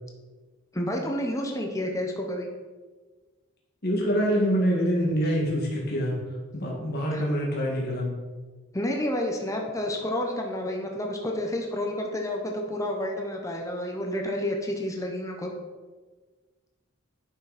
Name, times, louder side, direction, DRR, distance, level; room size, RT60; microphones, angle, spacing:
voice 1, 0.7-2.5 7.1-7.2 8.7-15.5, left 1 dB, 15° left, 2 dB, 0.9 m, -30 dB
voice 2, 3.8-6.2 6.5-8.2, equal, 50° left, -3 dB, 2.1 m, -25 dB
10.5 x 6.2 x 4.2 m, 1.3 s
head